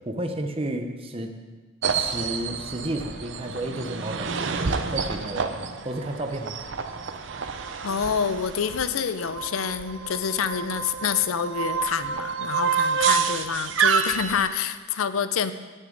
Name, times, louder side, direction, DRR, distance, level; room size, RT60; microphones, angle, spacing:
voice 1, 0.0-1.3 1.9-6.6, right 1 dB, 30° right, 5 dB, 0.8 m, -32 dB
amtrak hiawatha stop - no mic yank, 1.8-14.5, right 6 dB, 65° right, 0.6 m, -28 dB
voice 2, 7.8-15.5, left 7 dB, 90° left, 12 dB, 0.6 m, -27 dB
17.5 x 6.4 x 3.9 m, 1.4 s
head